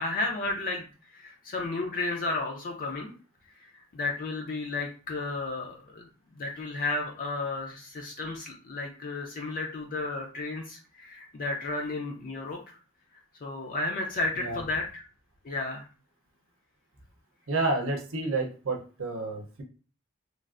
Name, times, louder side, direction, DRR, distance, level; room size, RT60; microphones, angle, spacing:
voice 1, 0.0-3.1 3.6-6.1 6.3-12.8 13.4-15.0 15.4-15.9, left 2 dB, 40° left, 1 dB, 0.4 m, -33 dB
voice 2, 17.5-19.6, right 2 dB, 70° right, 3 dB, 0.7 m, -30 dB
3.2 x 2.4 x 2.4 m, 0.37 s
head